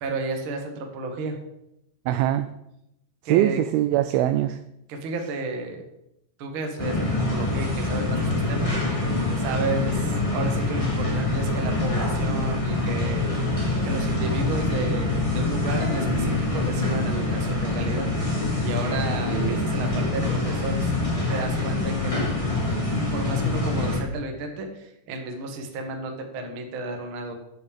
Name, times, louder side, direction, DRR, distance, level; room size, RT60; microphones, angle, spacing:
voice 1, 0.0-1.4 3.2-3.6 4.9-5.8 6.4-9.0 9.4-13.3 13.8-18.1 18.6-20.9 21.3-22.3 23.1-27.3, right 3 dB, 65° right, 3 dB, 1.3 m, -32 dB
voice 2, 2.1-2.5 3.3-4.6 19.3-19.8, right 13 dB, 85° right, 12 dB, 2.2 m, -23 dB
sound 1, 6.8-24.0, left 2 dB, 10° left, 2.0 m, -25 dB
9.8 x 6.7 x 7.3 m, 0.84 s
omnidirectional pair, 4.9 m